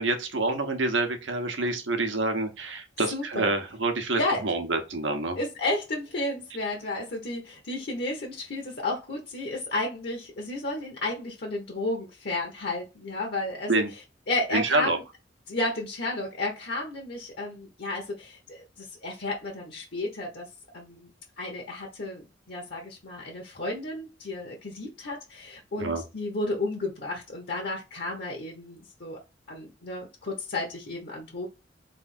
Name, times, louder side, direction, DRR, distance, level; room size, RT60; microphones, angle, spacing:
voice 1, 0.0-5.4 13.7-13.9 14.5-15.0 25.8-26.0, right 2 dB, 85° right, 5 dB, 1.1 m, -27 dB
voice 2, 3.1-3.5 4.2-4.4 5.4-13.8 14.3-15.0 15.5-20.5 20.7-21.1 21.4-29.2 29.5-31.5, left 2 dB, 60° left, 1 dB, 1.0 m, -32 dB
3.6 x 3.4 x 4.2 m, 0.28 s
head